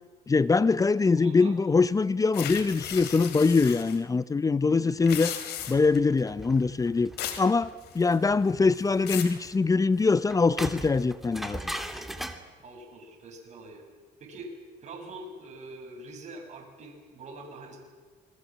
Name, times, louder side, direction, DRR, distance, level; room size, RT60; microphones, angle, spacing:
voice 1, 0.3-5.3 5.7-7.1 7.4-11.6, left 4 dB, 20° left, 17 dB, 0.7 m, -23 dB
voice 2, 1.2-1.6 4.6-5.0 12.6-13.8 14.2-14.5 14.8-17.8, right 2 dB, 45° right, 0 dB, 7.2 m, -44 dB
sound 1, 2.3-4.0 4.9-6.0 7.2-7.5 7.8-8.3 8.7-9.4, left 10 dB, 75° left, 3.2 m, -36 dB
sound 2, 5.6-12.4, right 1 dB, ahead, 2.2 m, -40 dB
28.0 x 21.5 x 7.5 m, 1.5 s
cardioid pair, 110°, 17 cm